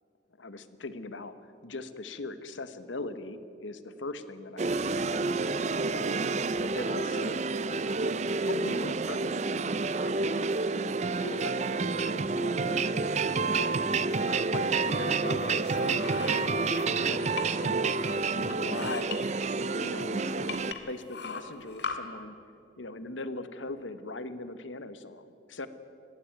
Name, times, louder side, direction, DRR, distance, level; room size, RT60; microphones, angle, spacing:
voice 1, 0.4-1.4 1.6-5.2 5.9-6.2 6.6-7.4 7.8-9.7 10.0-10.9 11.2-13.9 14.2-16.6 17.0-19.2 19.8-22.3 22.8-25.7, left 2 dB, 80° left, 12 dB, 1.1 m, -40 dB
sound 1, 4.6-20.7, right 4 dB, 35° right, 0.5 m, -29 dB
sound 2, 14.5-17.7 18.0-19.2 19.8-19.9 20.5-22.0, left 5 dB, 65° left, 1.8 m, -40 dB
19.5 x 15.0 x 9.2 m, 2.6 s
head